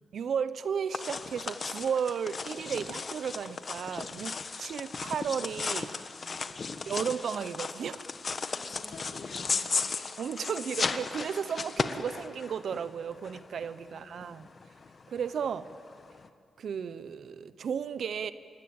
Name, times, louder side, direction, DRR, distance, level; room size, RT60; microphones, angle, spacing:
voice 1, 0.1-6.0 6.9-8.0 10.2-14.5 15.1-15.7 16.6-18.3, right 7 dB, 70° right, 13 dB, 1.0 m, -34 dB
sound 1, 0.9-16.3, left 4 dB, 50° left, 1.4 m, -36 dB
voice 2, 6.1-6.8 8.5-10.0 13.5-14.2, left 3 dB, 80° left, -2 dB, 5.2 m, -51 dB
26.5 x 23.0 x 9.0 m, 2.4 s
cardioid pair, 70°, 0 cm